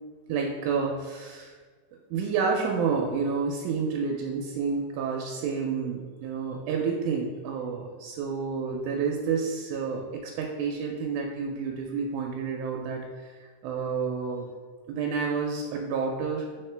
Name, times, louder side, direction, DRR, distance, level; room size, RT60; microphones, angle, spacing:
voice 1, 0.3-1.5 2.1-14.5 14.9-16.5, right 5 dB, 85° right, 0 dB, 2.0 m, -29 dB
4.4 x 3.6 x 3.3 m, 1.4 s
omnidirectional pair, 3.4 m